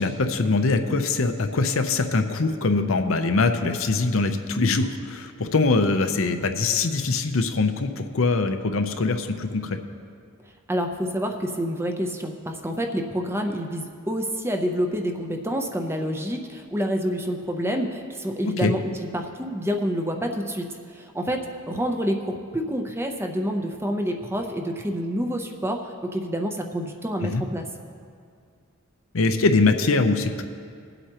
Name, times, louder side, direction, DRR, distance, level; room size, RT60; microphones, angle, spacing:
voice 1, 0.0-9.8 18.4-18.7 27.2-27.4 29.1-30.4, left 3 dB, 65° left, 7 dB, 0.6 m, -23 dB
voice 2, 10.7-18.8 19.1-20.7 21.1-21.4 21.7-27.7, equal, 10° right, 4 dB, 0.6 m, -28 dB
20.5 x 8.0 x 2.9 m, 2.2 s
head